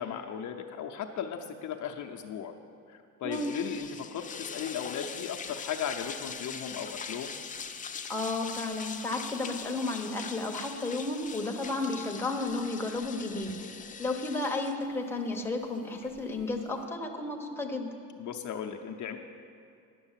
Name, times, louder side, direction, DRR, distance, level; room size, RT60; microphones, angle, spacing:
voice 1, 0.0-2.5 2.9-7.4 18.2-19.2, left 8 dB, 60° left, 3 dB, 0.7 m, -36 dB
sound 1, 3.3-16.8, left 6 dB, 25° left, 0.5 m, -42 dB
voice 2, 8.1-13.5 14.0-17.9, left 2 dB, 5° left, 2 dB, 1.0 m, -33 dB
10.5 x 6.2 x 7.4 m, 2.4 s
cardioid pair, 110°, 34 cm